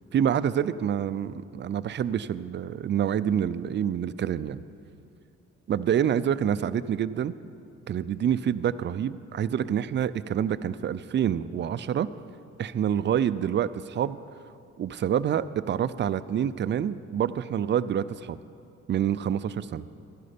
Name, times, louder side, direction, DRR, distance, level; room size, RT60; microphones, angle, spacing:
voice 1, 0.1-4.6 5.7-7.3 7.9-12.1 12.6-14.2 14.8-18.4 18.9-19.8, right 9 dB, 40° right, 14 dB, 0.4 m, -27 dB
12.0 x 11.0 x 5.1 m, 2.5 s
cardioid pair, 90°, 30 cm